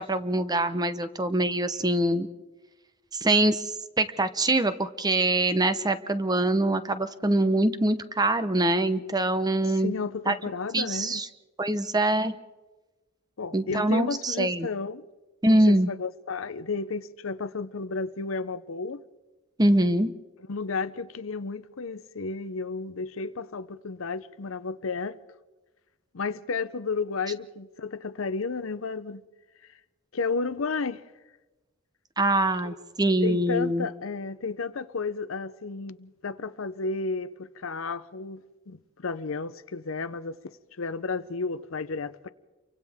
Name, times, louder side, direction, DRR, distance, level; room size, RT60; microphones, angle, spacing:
voice 1, 0.0-2.3 3.2-3.6 4.0-10.0 10.3-10.4 10.7-11.3 11.6-12.4 13.5-14.7 15.4-15.9 19.6-20.1 32.2-33.9, right 1 dB, 20° right, 0.8 m, -24 dB
voice 2, 9.7-11.2 13.4-15.0 15.4-19.0 20.5-25.2 26.1-29.2 30.1-31.0 32.6-32.8 33.2-42.3, left 4 dB, 80° left, 0.7 m, -32 dB
29.5 x 24.0 x 3.6 m
head